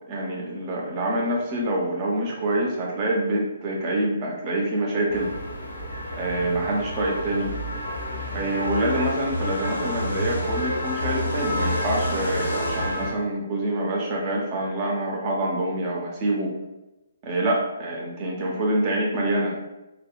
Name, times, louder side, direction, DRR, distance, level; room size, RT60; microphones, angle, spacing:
voice 1, 0.1-5.3 6.1-7.5 8.3-16.5 17.2-19.5, right 1 dB, 30° right, -2 dB, 0.8 m, -26 dB
sound 1, 5.1-13.1, left 1 dB, 70° left, 0.9 m, -29 dB
3.4 x 2.3 x 2.4 m, 0.97 s
figure-of-eight pair, 135°, 0 cm